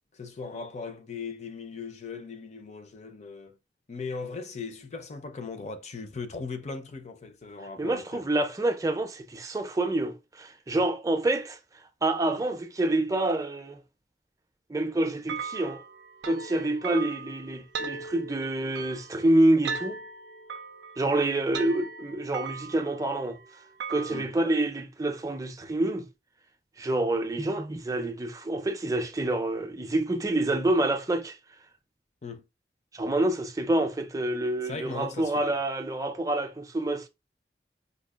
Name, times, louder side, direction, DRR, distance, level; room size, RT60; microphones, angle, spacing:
voice 1, 0.1-3.6 3.9-8.2 24.1-24.3 32.2-32.4 34.6-35.4, left 4 dB, 40° left, 0.6 m, -38 dB
voice 2, 7.8-11.6 12.0-13.8 14.7-15.8 16.2-20.0 21.0-23.4 23.9-26.1 26.8-31.4 32.9-37.1, right 1 dB, 20° right, 0.5 m, -27 dB
sound 1, 15.3-24.2, right 5 dB, 80° right, 0.4 m, -39 dB
5.1 x 2.3 x 2.3 m
head